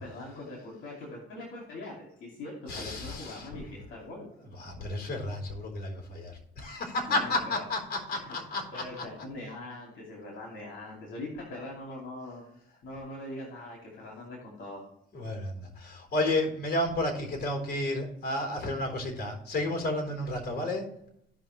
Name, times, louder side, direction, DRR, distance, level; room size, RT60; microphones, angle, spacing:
voice 1, 0.0-4.3 7.1-7.6 8.2-8.4 8.7-12.4 12.8-14.9, left 2 dB, 80° left, -2 dB, 2.6 m, -42 dB
voice 2, 2.7-3.6 4.4-9.0 15.1-20.9, left 1 dB, 55° left, 2 dB, 3.9 m, -32 dB
15.5 x 5.8 x 3.2 m, 0.74 s
cardioid pair, 90°, 20 cm